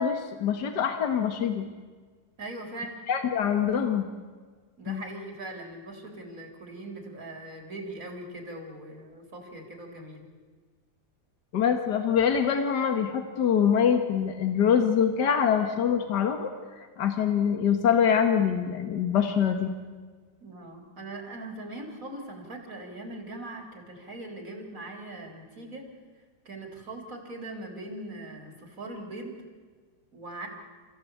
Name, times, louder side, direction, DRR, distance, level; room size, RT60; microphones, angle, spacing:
voice 1, 0.0-1.7 3.1-4.1 4.9-5.0 11.5-16.5 17.0-19.7, left 7 dB, 80° left, 6 dB, 2.0 m, -24 dB
voice 2, 2.4-3.0 4.8-10.2 20.4-25.9 26.5-29.4 30.1-30.5, right 2 dB, 55° right, 2 dB, 4.3 m, -40 dB
30.0 x 15.5 x 8.5 m, 1.5 s
omnidirectional pair, 1.8 m